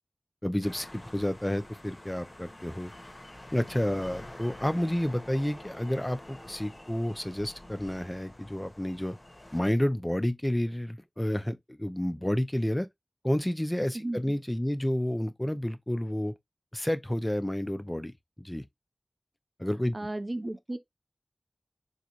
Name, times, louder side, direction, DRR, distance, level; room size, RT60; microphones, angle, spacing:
voice 1, 0.4-2.9 3.5-9.2 9.5-12.9 13.2-16.3 16.7-18.1 18.4-18.6 19.6-20.0, left 1 dB, 15° left, 0.6 m, -30 dB
sound 1, 0.6-9.6, left 1 dB, 50° left, 1.7 m, -47 dB
voice 2, 13.9-14.4 19.9-20.8, right 1 dB, 50° right, 0.7 m, -34 dB
6.5 x 2.2 x 3.0 m
wide cardioid pair, 50°, 0 cm